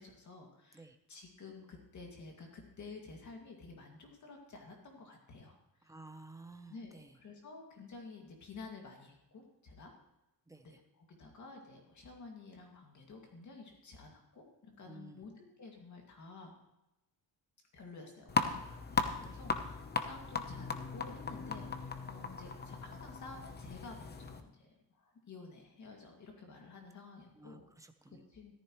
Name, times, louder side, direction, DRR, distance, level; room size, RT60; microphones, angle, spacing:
voice 1, 0.0-5.9 6.7-9.9 10.6-16.5 17.7-27.6 28.1-28.5, left 3 dB, 45° left, 1 dB, 2.3 m, -52 dB
voice 2, 5.9-7.1 10.5-10.7 14.9-15.2 19.2-19.4 27.4-28.2, right 2 dB, 10° right, 7 dB, 0.8 m, -53 dB
sound 1, 18.3-24.4, left 4 dB, 25° left, 0.9 m, -37 dB
14.0 x 13.5 x 3.1 m, 0.91 s
cardioid pair, 155°, 39 cm